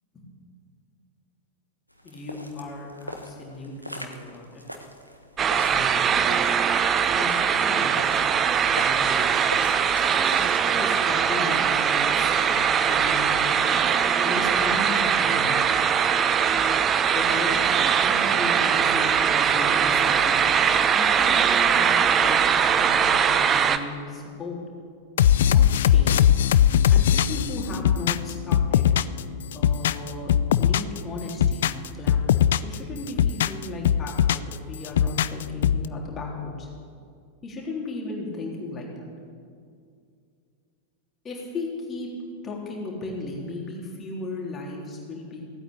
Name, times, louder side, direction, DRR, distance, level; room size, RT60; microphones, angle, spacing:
sound 1, 1.9-11.1, equal, 90° left, 1.2 m, -41 dB
voice 1, 2.0-4.6 5.7-6.1 7.2-8.3 8.6-9.4 10.8-12.6 12.9-13.9 14.2-15.5 17.0-17.7 18.1-20.4 20.9-24.6 25.5-26.2 26.9-28.9 29.5-36.7 37.4-39.1 41.2-42.1 42.4-45.4, left 2 dB, 25° left, -2 dB, 3.5 m, -36 dB
sound 2, 5.4-23.8, right 7 dB, 25° right, 0.8 m, -21 dB
hip hop beat, 25.2-29.2 29.5-31.0 31.3-32.8 33.1-34.5 34.8-35.9, left 10 dB, 60° left, 0.4 m, -20 dB
16.5 x 9.0 x 8.6 m, 2.3 s
figure-of-eight pair, 90°, 0 cm